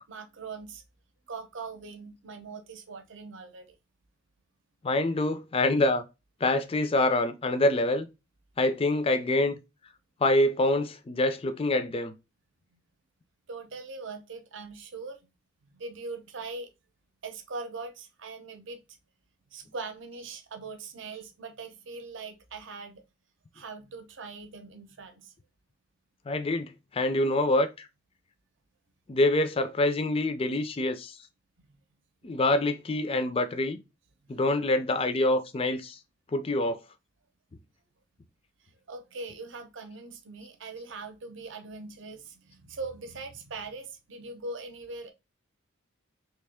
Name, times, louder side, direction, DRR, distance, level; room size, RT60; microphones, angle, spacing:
voice 1, 0.1-0.8 1.3-3.7 13.5-15.3 15.6-16.7 17.2-18.8 19.5-23.0 23.5-25.3 31.6-31.8 34.2-34.5 38.9-45.1, right 3 dB, 60° right, 0.7 m, -41 dB
voice 2, 4.8-6.0 6.4-8.1 8.6-9.6 10.2-12.1 26.3-27.9 29.1-31.1 32.2-33.8 34.3-36.0 36.3-36.8, left 2 dB, 25° left, 0.4 m, -26 dB
3.2 x 2.9 x 3.5 m
head